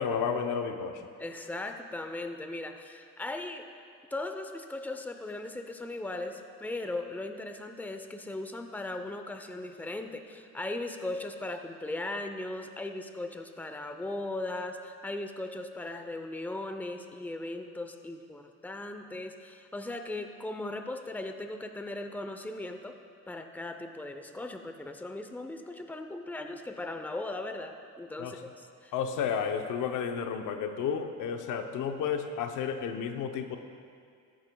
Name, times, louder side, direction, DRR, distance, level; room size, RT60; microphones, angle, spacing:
voice 1, 0.0-1.0 28.2-28.4 28.9-33.6, left 7 dB, 85° left, 6 dB, 0.8 m, -32 dB
voice 2, 1.2-3.7 4.1-23.0 23.3-28.9, left 2 dB, 5° left, 6 dB, 0.6 m, -38 dB
14.0 x 11.0 x 2.3 m, 2.2 s
cardioid pair, 90°, 30 cm